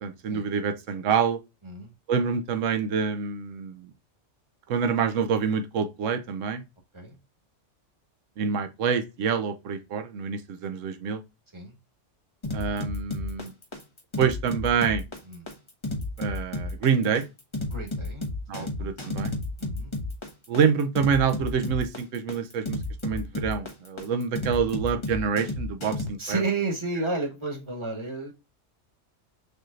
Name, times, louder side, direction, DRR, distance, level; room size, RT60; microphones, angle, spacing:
voice 1, 0.0-1.4 2.1-3.9 4.7-6.6 8.4-11.2 12.5-13.5 14.2-15.0 16.2-17.2 18.5-19.3 20.5-22.8 23.0-26.4, right 6 dB, 85° right, 1.1 m, -26 dB
sound 1, 12.4-26.1, left 2 dB, 25° left, 1.0 m, -32 dB
voice 2, 17.7-18.3 18.5-18.9 19.6-19.9 26.2-28.3, right 3 dB, 25° right, 1.7 m, -31 dB
6.6 x 3.2 x 2.4 m
omnidirectional pair, 1.3 m